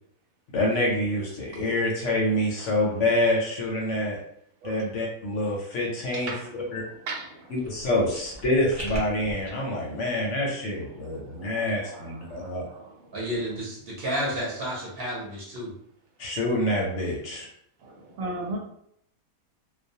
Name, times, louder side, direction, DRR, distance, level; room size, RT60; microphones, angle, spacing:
voice 1, 0.5-4.2 4.6-6.3 6.7-6.8 7.5-12.7 16.2-17.5, left 1 dB, 70° left, -2 dB, 0.8 m, -26 dB
voice 2, 6.1-6.6 7.1-7.5 9.6-10.0 10.9-13.1 17.8-18.6, right 2 dB, 75° right, -1 dB, 1.0 m, -38 dB
sound 1, 7.6-9.5, equal, 15° right, 0.6 m, -38 dB
voice 3, 13.1-15.7, equal, 50° right, -5 dB, 0.8 m, -31 dB
2.3 x 2.1 x 2.7 m, 0.71 s
omnidirectional pair, 1.5 m